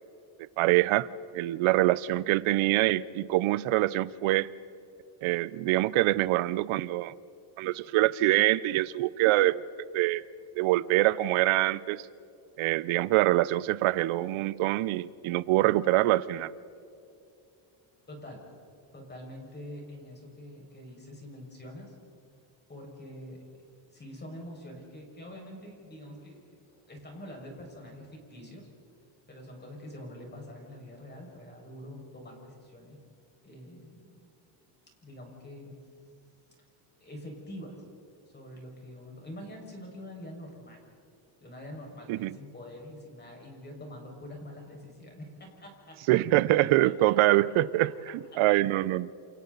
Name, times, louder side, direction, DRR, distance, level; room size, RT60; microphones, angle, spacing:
voice 1, 0.4-1.1 1.3-4.5 5.2-7.1 7.6-9.6 9.9-10.2 10.6-12.0 12.6-16.5 42.1-42.3 46.1-49.1, right 16 dB, 85° right, 19 dB, 0.8 m, -25 dB
voice 2, 18.1-18.5 18.9-21.9 22.7-23.4 23.9-26.4 26.9-28.7 29.3-33.0 33.4-34.2 35.0-35.8 37.0-37.8 38.3-40.8 41.4-47.4 47.8-47.9 48.3-48.4, left 1 dB, 20° left, 0 dB, 5.8 m, -45 dB
29.0 x 28.0 x 4.1 m, 2.6 s
cardioid pair, 130°, 48 cm